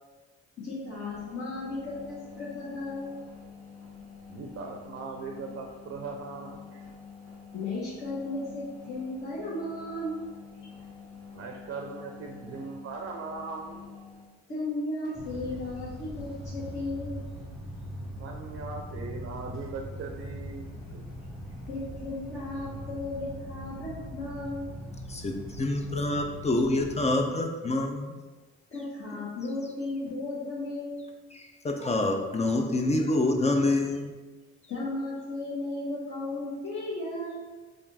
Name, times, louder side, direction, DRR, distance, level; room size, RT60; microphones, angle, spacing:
voice 1, 0.6-3.2 7.5-10.2 14.5-17.2 21.7-24.7 28.7-31.1 34.7-37.4, left 2 dB, 45° left, -9 dB, 1.1 m, -35 dB
sound 1, 0.7-14.3, left 5 dB, 65° left, 1.3 m, -48 dB
voice 2, 4.3-6.8 11.3-13.8 18.2-21.0, right 4 dB, 45° right, 2 dB, 0.5 m, -39 dB
sound 2, 15.1-27.1, equal, ahead, 1.1 m, -41 dB
voice 3, 25.1-28.2 31.6-34.2, left 2 dB, 20° left, 3 dB, 0.4 m, -26 dB
3.4 x 2.4 x 3.9 m, 1.3 s
cardioid pair, 90°, 30 cm